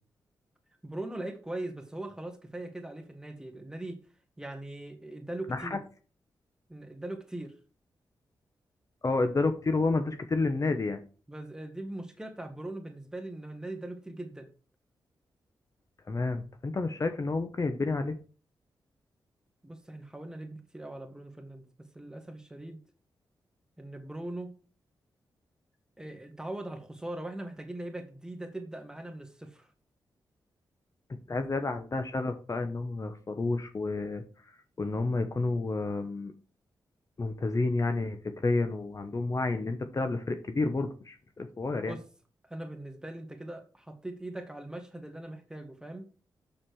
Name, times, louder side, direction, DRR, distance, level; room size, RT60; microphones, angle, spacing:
voice 1, 0.8-4.0 4.4-5.8 6.7-7.5 11.3-14.5 19.6-22.8 23.8-24.5 26.0-29.7 31.3-31.6 41.9-42.0 42.4-46.1, right 1 dB, 10° right, 1.8 m, -40 dB
voice 2, 9.0-11.0 16.1-18.2 31.3-34.2 34.8-36.3 37.2-41.9, left 3 dB, 40° left, 1.0 m, -30 dB
6.6 x 6.2 x 4.7 m
cardioid pair, 60°, 8 cm